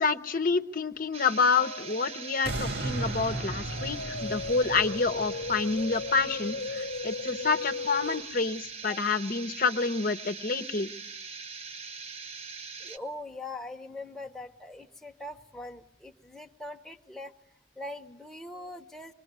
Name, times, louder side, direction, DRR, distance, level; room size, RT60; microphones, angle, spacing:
voice 1, 0.0-10.9, left 4 dB, 50° left, 8 dB, 1.0 m, -28 dB
sound 1, 1.1-13.0, right 5 dB, 35° right, 1.1 m, -42 dB
sound 2, 1.6-8.2, left 3 dB, 80° left, 1.0 m, -37 dB
sound 3, 2.4-7.5 8.0-8.1, right 2 dB, 75° right, 1.8 m, -37 dB
voice 2, 12.8-17.3 17.8-19.1, left 2 dB, 5° left, 3 dB, 1.1 m, -42 dB
26.0 x 22.0 x 9.6 m, 0.79 s
head